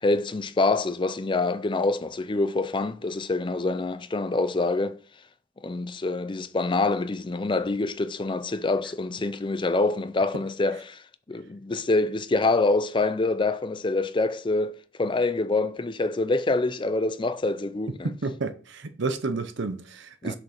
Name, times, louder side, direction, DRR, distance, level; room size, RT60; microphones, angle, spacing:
voice 1, 0.0-5.0 5.6-11.0 11.3-14.7 15.0-18.1 20.2-20.4, left 3 dB, 20° left, 0.4 m, -26 dB
voice 2, 18.0-20.4, right 3 dB, 50° right, 0.7 m, -30 dB
6.4 x 5.3 x 4.9 m
head